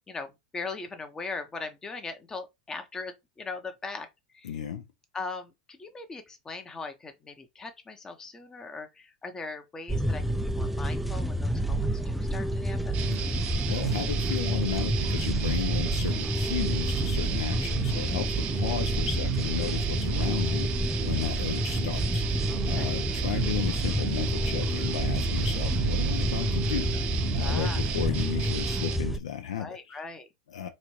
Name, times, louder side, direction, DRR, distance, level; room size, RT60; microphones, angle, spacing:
voice 1, 0.1-4.1 4.3-4.6 5.1-13.0 22.5-22.9 27.4-27.8 29.6-30.3, left 3 dB, 20° left, 0.8 m, -40 dB
voice 2, 4.4-4.8 13.3-26.9 27.3-30.0 30.5-30.7, left 9 dB, 75° left, 0.7 m, -34 dB
sound 1, 9.9-29.2, right 1 dB, ahead, 0.4 m, -28 dB
sound 2, 12.9-29.0, right 10 dB, 45° right, 0.7 m, -34 dB
4.1 x 2.6 x 3.1 m
hypercardioid pair, 95°, 3 cm